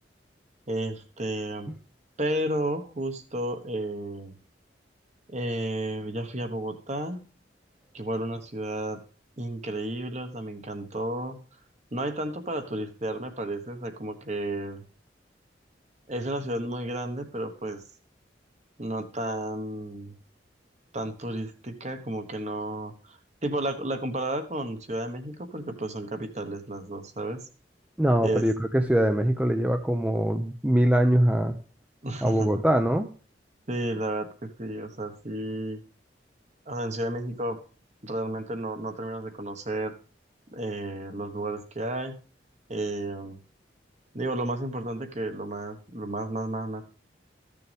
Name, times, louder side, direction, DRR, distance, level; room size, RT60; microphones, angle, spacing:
voice 1, 0.7-1.7 2.2-4.3 5.3-7.2 7.9-9.0 9.4-11.4 11.9-14.8 16.1-17.8 18.8-20.1 20.9-27.5 28.2-28.5 32.0-32.5 33.7-35.8 36.7-37.6 38.0-39.9 40.5-42.1 42.7-43.4 44.1-46.8, right 1 dB, 40° right, 7 dB, 1.3 m, -32 dB
voice 2, 28.0-31.5 32.2-33.1, right 1 dB, 5° right, 6 dB, 0.6 m, -23 dB
14.0 x 6.8 x 3.4 m, 0.40 s
head